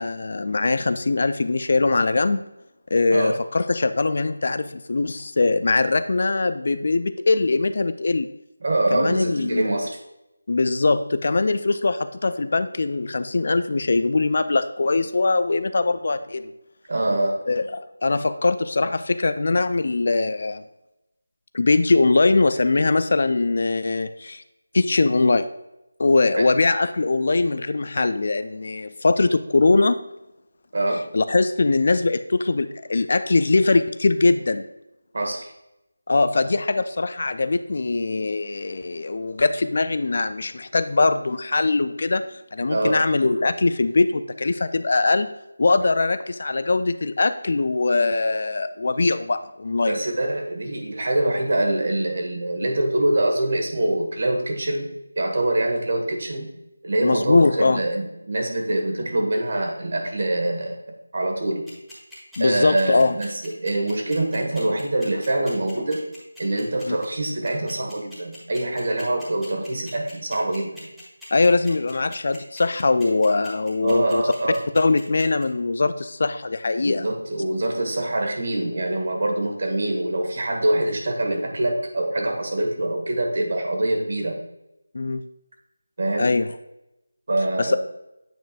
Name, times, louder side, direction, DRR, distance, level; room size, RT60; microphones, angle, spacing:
voice 1, 0.0-2.4 2.9-8.3 8.9-9.6 10.5-16.5 17.5-20.6 21.5-24.4 24.7-25.5 26.0-30.0 31.1-34.6 36.1-42.2 42.5-45.3 45.6-50.0 57.0-57.8 62.4-63.2 66.9-67.0 71.3-74.2 74.7-77.1 84.9-85.2 86.2-86.5 87.6-87.8, left 3 dB, 50° left, 12 dB, 0.3 m, -21 dB
voice 2, 8.6-10.0 16.9-17.4 26.4-26.5 30.7-31.1 35.1-35.5 42.7-43.0 49.9-54.9 55.1-56.5 56.8-60.8 61.1-61.7 62.4-66.0 66.4-70.9 73.8-74.6 76.8-84.4 86.0-86.3 87.3-87.8, right 1 dB, 50° right, 2 dB, 1.7 m, -24 dB
sound 1, 61.7-75.4, left 2 dB, ahead, 1.6 m, -43 dB
8.8 x 5.3 x 2.5 m, 0.91 s
figure-of-eight pair, 170°, 0 cm